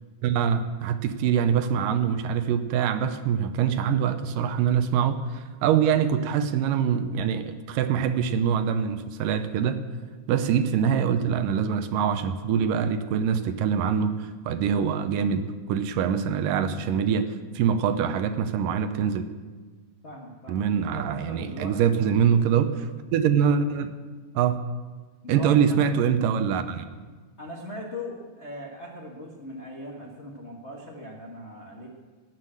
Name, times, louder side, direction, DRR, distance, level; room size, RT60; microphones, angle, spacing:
voice 1, 0.2-9.8 10.3-19.3 20.5-23.9 24.3-24.6 25.3-26.9, right 7 dB, 80° right, 9 dB, 2.2 m, -24 dB
voice 2, 20.0-22.0 25.2-26.1 27.4-31.9, left 1 dB, 90° left, -2 dB, 0.6 m, -39 dB
18.5 x 7.7 x 7.6 m, 1.4 s
omnidirectional pair, 4.1 m